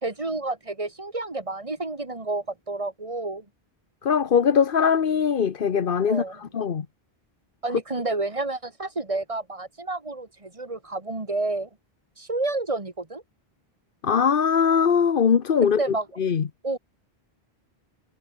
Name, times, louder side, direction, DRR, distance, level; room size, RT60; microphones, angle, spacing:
voice 1, 0.0-3.5 6.1-6.4 7.6-11.7 12.2-13.2 15.8-16.1 16.6-16.8, right 2 dB, 30° right, 2.2 m, -30 dB
voice 2, 4.0-6.2 6.5-6.9 14.0-15.8 16.2-16.4, left 7 dB, 60° left, 1.1 m, -21 dB
omnidirectional pair, 1.1 m